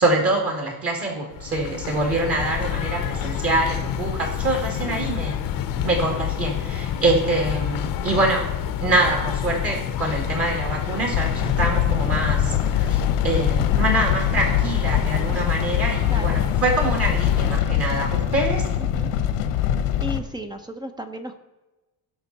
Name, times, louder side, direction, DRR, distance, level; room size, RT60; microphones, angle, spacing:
voice 1, 0.0-5.4 5.8-8.5 8.8-18.7, right 2 dB, 30° right, 1 dB, 2.2 m, -25 dB
sound 1, 1.3-17.6, left 10 dB, 50° left, 0.9 m, -28 dB
sound 2, 11.1-20.2, left 9 dB, 90° left, 1.3 m, -23 dB
voice 2, 18.8-19.1 20.0-21.3, equal, 10° right, 7 dB, 0.7 m, -34 dB
17.0 x 6.4 x 4.2 m, 1.1 s
cardioid pair, 150°, 44 cm